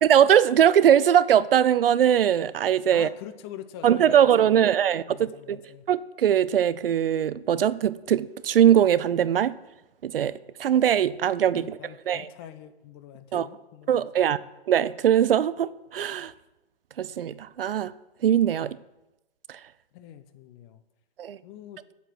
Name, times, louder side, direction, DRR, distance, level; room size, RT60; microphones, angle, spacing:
voice 1, 0.0-3.1 3.8-5.6 5.9-9.5 10.0-11.8 12.1-12.3 13.3-13.5 13.9-14.4 14.7-16.3 17.0-17.9 18.2-18.8 19.5-19.6 21.2-21.4, right 9 dB, 65° right, 0.5 m, -21 dB
voice 2, 2.9-4.7 5.1-5.8 11.5-14.1 14.4-14.5 19.9-20.8 21.4-21.8, left 11 dB, 25° left, 0.6 m, -44 dB
9.1 x 8.3 x 6.0 m
figure-of-eight pair, 125°, 31 cm